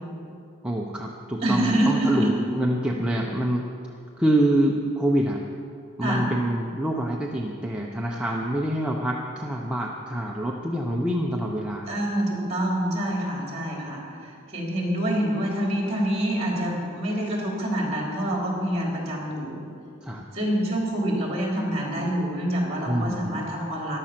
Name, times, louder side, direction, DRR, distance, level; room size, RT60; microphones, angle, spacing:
voice 1, 0.6-3.6 4.2-5.4 6.0-11.9 20.0-20.2 22.9-23.4, right 1 dB, 5° right, -2 dB, 0.8 m, -26 dB
voice 2, 1.4-2.4 6.0-6.3 11.8-19.6 20.3-24.0, right 1 dB, 30° right, -2 dB, 3.3 m, -26 dB
14.0 x 11.5 x 5.9 m, 2.4 s
head